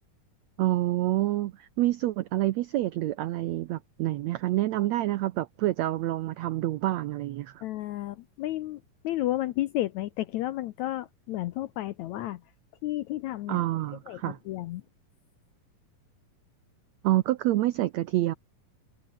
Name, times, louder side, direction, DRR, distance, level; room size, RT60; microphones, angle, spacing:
voice 1, 0.6-7.6 13.5-14.4 17.0-18.3, right 15 dB, 85° right, 1.5 m, -27 dB
voice 2, 7.6-12.4 12.8-13.6 14.1-14.8, left 15 dB, 75° left, 1.7 m, -32 dB
omnidirectional pair, 4.1 m